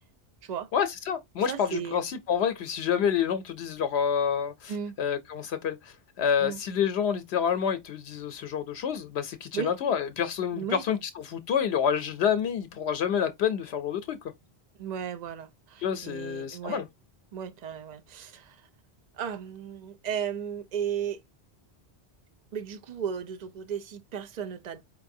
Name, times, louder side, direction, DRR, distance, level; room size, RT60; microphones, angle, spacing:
voice 1, 0.7-14.2 15.8-16.9, left 8 dB, 75° left, 0.8 m, -28 dB
voice 2, 1.5-2.0 4.7-4.9 6.4-6.6 9.5-9.7 10.5-10.8 14.8-16.8 17.3-18.6 19.2-21.2 22.5-24.8, right 8 dB, 50° right, 0.6 m, -35 dB
4.6 x 3.0 x 2.6 m
omnidirectional pair, 1.1 m